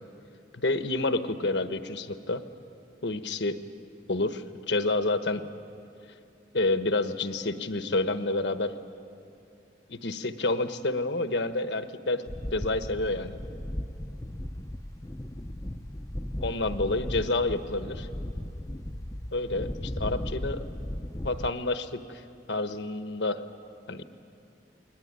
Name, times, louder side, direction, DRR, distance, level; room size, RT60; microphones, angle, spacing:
voice 1, 0.5-2.4 3.0-3.6 4.1-5.5 6.5-8.7 9.9-13.4 16.4-18.1 19.3-20.6 21.2-22.2 22.5-23.4 23.9-24.0, left 2 dB, 70° left, 9 dB, 1.2 m, -29 dB
sound 1, 12.3-21.5, left 1 dB, 20° left, 0.7 m, -36 dB
29.0 x 21.0 x 9.7 m, 2.6 s
head